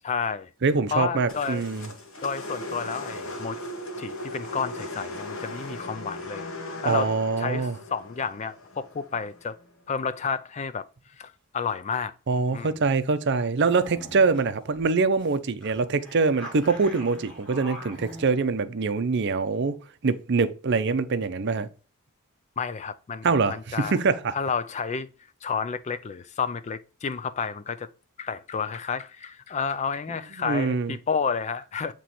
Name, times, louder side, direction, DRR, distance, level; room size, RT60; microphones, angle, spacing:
voice 1, 0.0-0.5 0.9-1.7 2.2-3.6 4.0-6.5 6.8-7.1 7.4-9.6 9.9-10.9 11.2-12.1 12.5-12.8 22.6-24.0 24.3-25.1 25.4-27.9 28.2-31.9, left 6 dB, 30° left, 0.3 m, -31 dB
voice 2, 0.6-1.9 6.8-7.7 12.3-19.8 20.0-21.7 23.2-24.3 30.4-30.9, right 4 dB, 50° right, 0.5 m, -24 dB
sound 1, 1.3-9.6, left 1 dB, 65° left, 1.3 m, -38 dB
sound 2, 13.6-14.4 14.8-14.9 15.2-15.4 15.6-18.3, equal, 5° left, 1.6 m, -43 dB
7.7 x 3.0 x 4.2 m
head